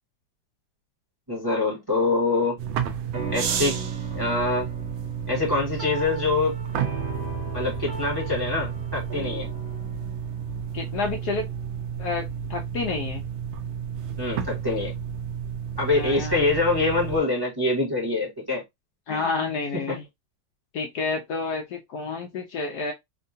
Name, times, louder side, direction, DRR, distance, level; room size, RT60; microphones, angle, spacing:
voice 1, 1.3-2.6 3.3-3.8 4.1-4.7 5.3-6.6 7.5-9.5 14.2-14.9 15.8-18.6 19.1-19.5 19.7-19.8, left 3 dB, 15° right, 0.9 m, -25 dB
sound 1, 2.6-17.2, right 8 dB, 85° right, 1.4 m, -32 dB
sound 2, 3.1-11.8, right 3 dB, 55° right, 1.4 m, -37 dB
voice 2, 10.7-11.5 12.0-12.2 12.5-13.2 15.9-16.4 19.1-20.0 20.7-22.9, left 4 dB, 70° left, 1.0 m, -29 dB
3.6 x 2.3 x 2.6 m
omnidirectional pair, 2.1 m